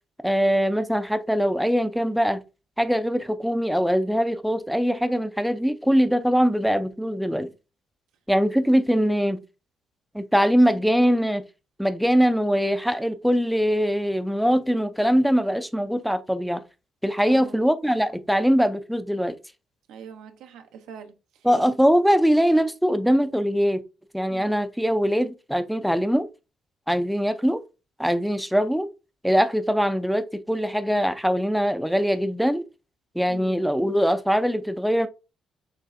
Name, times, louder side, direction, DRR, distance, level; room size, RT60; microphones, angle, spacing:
voice 1, 0.2-2.4 2.8-7.5 8.3-9.4 10.1-11.4 11.8-16.6 17.0-19.4 21.4-23.8 24.1-26.3 26.9-27.6 28.0-28.9 29.2-32.6 33.2-35.1, equal, ahead, 0.4 m, -22 dB
voice 2, 17.3-17.6 19.9-21.5 24.3-24.6 33.3-33.5, right 7 dB, 90° right, 0.6 m, -44 dB
5.1 x 3.1 x 2.5 m
cardioid pair, 90°, 0 cm